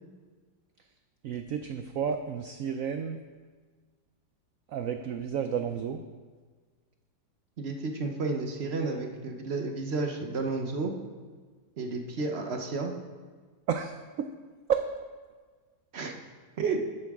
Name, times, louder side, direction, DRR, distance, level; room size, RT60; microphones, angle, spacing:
voice 1, 1.2-3.2 4.7-6.0 13.7-14.3 14.7-14.8, right 7 dB, 85° right, 7 dB, 0.7 m, -31 dB
voice 2, 7.6-10.9 11.8-12.9 15.9-16.1 16.6-16.8, right 3 dB, 50° right, 3 dB, 0.9 m, -31 dB
12.5 x 8.4 x 3.6 m, 1.5 s
omnidirectional pair, 2.0 m